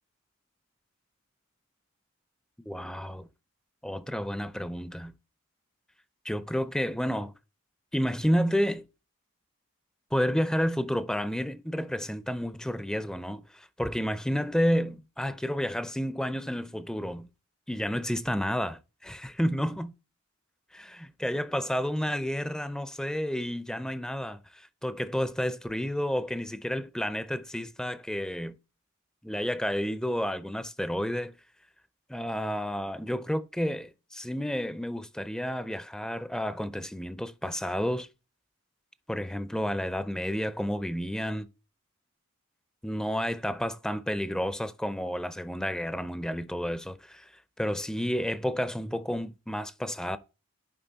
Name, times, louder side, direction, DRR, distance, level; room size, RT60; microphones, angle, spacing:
voice 1, 2.7-3.3 3.8-5.1 6.2-7.3 7.9-8.9 10.1-17.3 17.7-19.9 21.2-28.5 29.2-31.3 32.1-38.1 39.1-41.5 42.8-47.3 47.6-50.2, equal, 5° left, 0.4 m, -30 dB
11.5 x 4.7 x 4.0 m
head